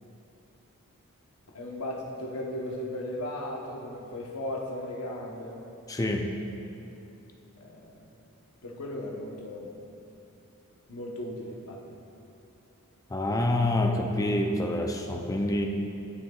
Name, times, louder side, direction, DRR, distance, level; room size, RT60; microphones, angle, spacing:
voice 1, 1.5-5.6 7.6-8.1 8.6-9.7 10.9-12.0, left 1 dB, 80° left, -2 dB, 1.0 m, -36 dB
voice 2, 5.9-6.3 13.1-15.7, left 1 dB, 15° left, 3 dB, 0.5 m, -27 dB
13.0 x 6.7 x 2.4 m, 2.8 s
head